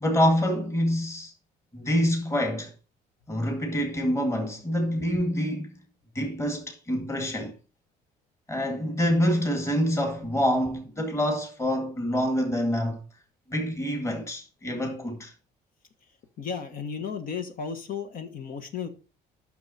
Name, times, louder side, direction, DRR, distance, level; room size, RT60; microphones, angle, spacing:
voice 1, 0.0-1.3 1.7-2.7 3.3-5.7 6.2-7.5 8.5-13.0 13.5-15.3, equal, 15° left, 2.0 m, -26 dB
voice 2, 16.4-18.9, left 6 dB, 55° left, 1.3 m, -34 dB
9.4 x 6.3 x 4.2 m
cardioid pair, 110°, 17 cm